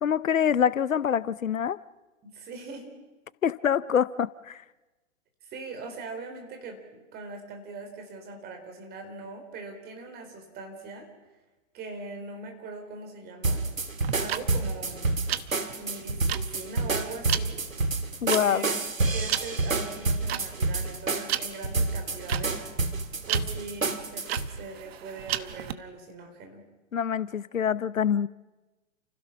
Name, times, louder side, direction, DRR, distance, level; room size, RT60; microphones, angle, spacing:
voice 1, 0.0-1.8 3.4-4.6 18.2-18.6 26.9-28.3, left 8 dB, 80° left, 0.8 m, -25 dB
voice 2, 2.2-2.9 5.4-11.1 11.7-13.6 14.1-15.0 15.8-17.6 18.4-18.8 19.1-22.6 23.3-26.6, right 3 dB, 25° right, 4.3 m, -41 dB
sound 1, 13.4-24.5, right 3 dB, 90° right, 1.9 m, -29 dB
sound 2, 14.0-25.7, right 11 dB, 50° right, 1.1 m, -34 dB
30.0 x 16.0 x 6.0 m
figure-of-eight pair, 120°, 39 cm